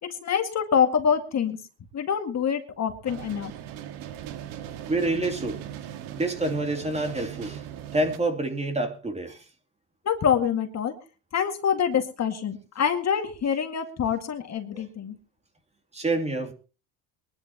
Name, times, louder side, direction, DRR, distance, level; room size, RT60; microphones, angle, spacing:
voice 1, 0.0-1.6 1.9-3.5 10.0-11.0 11.3-15.2, left 7 dB, 40° left, 2.2 m, -25 dB
sound 1, 3.0-8.2, right 10 dB, 75° right, 1.9 m, -39 dB
voice 2, 4.8-5.6 6.1-7.6 7.9-9.4 14.7-14.8 15.9-16.5, right 2 dB, 15° right, 2.9 m, -27 dB
22.5 x 11.5 x 3.0 m
supercardioid pair, 100°, 39 cm